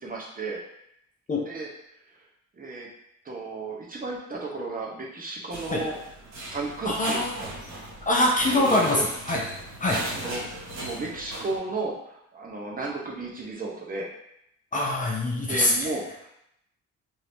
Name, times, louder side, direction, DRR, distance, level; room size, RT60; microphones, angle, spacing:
voice 1, 0.0-0.6 1.4-1.7 2.5-2.9 3.2-6.0 6.5-7.9 8.5-9.0 10.2-14.1 15.4-16.3, right 3 dB, 30° right, -3 dB, 0.8 m, -34 dB
sound 1, 5.5-11.6, right 1 dB, 60° right, 1.4 m, -37 dB
voice 2, 6.8-7.4 8.1-9.4 9.8-10.0 14.7-15.9, left 1 dB, 25° left, -2 dB, 0.6 m, -24 dB
2.7 x 2.6 x 3.4 m, 0.78 s
cardioid pair, 90°, 30 cm